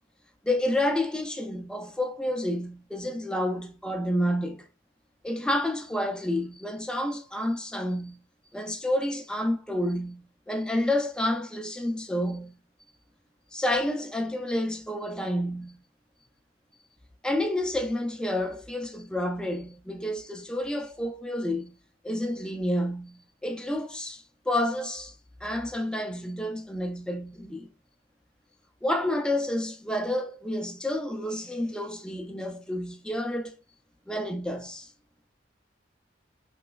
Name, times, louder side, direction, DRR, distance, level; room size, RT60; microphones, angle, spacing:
voice 1, 0.4-4.7 5.2-8.2 8.5-12.5 13.5-15.8 17.2-21.7 22.0-25.1 25.4-27.7 28.8-33.6 34.1-34.9, left 1 dB, 5° left, 0.3 m, -29 dB
3.1 x 3.0 x 2.2 m
head